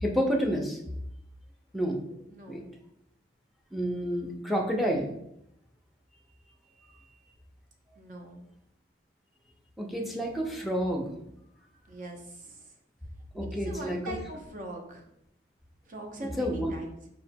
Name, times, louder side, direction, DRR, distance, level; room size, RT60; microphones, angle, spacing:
voice 1, 0.0-0.8 1.7-2.0 2.5-2.6 3.7-5.1 9.8-11.1 13.3-14.1 16.4-16.7, equal, ahead, 0 dB, 0.6 m, -29 dB
voice 2, 2.3-2.7 8.0-8.4 11.9-12.6 13.5-15.1 15.9-16.9, right 1 dB, 45° right, 1 dB, 0.7 m, -41 dB
4.8 x 4.3 x 2.2 m, 0.78 s
head